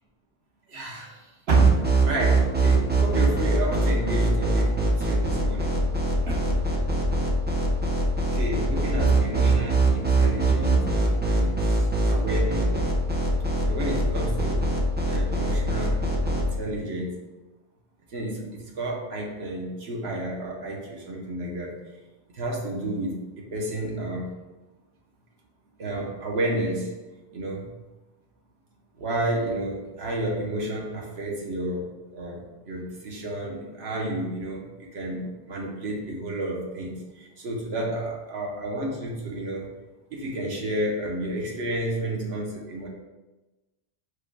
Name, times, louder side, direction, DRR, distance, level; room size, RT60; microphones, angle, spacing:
voice 1, 0.7-5.7 6.2-6.5 8.3-12.9 13.7-14.7 15.1-16.0 16.3-17.2 18.1-21.7 22.3-24.3 25.8-26.9 27.3-27.7 29.0-39.7 40.1-42.9, right 1 dB, 80° right, -1 dB, 1.1 m, -31 dB
sound 1, 1.5-16.4, right 3 dB, 15° right, 0.4 m, -23 dB
4.9 x 2.2 x 4.6 m, 1.1 s
omnidirectional pair, 1.1 m